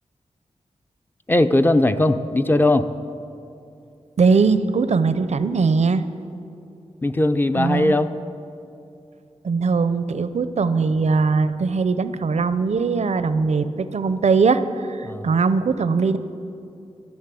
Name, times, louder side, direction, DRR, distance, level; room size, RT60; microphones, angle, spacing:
voice 1, 1.3-2.9 7.0-8.1 15.0-15.3, left 1 dB, 15° left, 10 dB, 0.5 m, -19 dB
voice 2, 4.2-6.0 7.5-8.0 9.4-16.2, right 4 dB, 70° right, 13 dB, 0.6 m, -20 dB
15.0 x 6.5 x 9.1 m, 2.7 s
wide cardioid pair, 95°, 12 cm